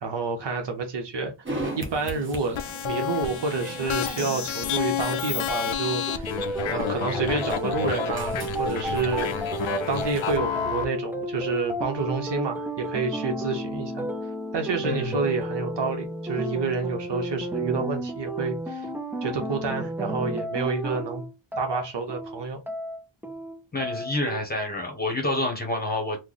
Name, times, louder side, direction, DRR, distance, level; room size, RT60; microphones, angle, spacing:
voice 1, 0.0-1.3 1.8-6.3 6.7-9.3 9.9-14.1 14.5-18.9 19.2-21.2 21.6-22.6, right 4 dB, 60° right, 0.9 m, -29 dB
sound 1, 1.4-10.4, right 2 dB, 25° right, 0.8 m, -38 dB
sound 2, 2.5-10.8, left 9 dB, 70° left, 0.6 m, -30 dB
sound 3, 6.1-24.4, right 1 dB, 5° right, 0.3 m, -32 dB
voice 2, 14.8-15.2 23.7-26.2, left 2 dB, 20° left, 0.9 m, -28 dB
3.2 x 2.1 x 3.8 m
wide cardioid pair, 180°, 49 cm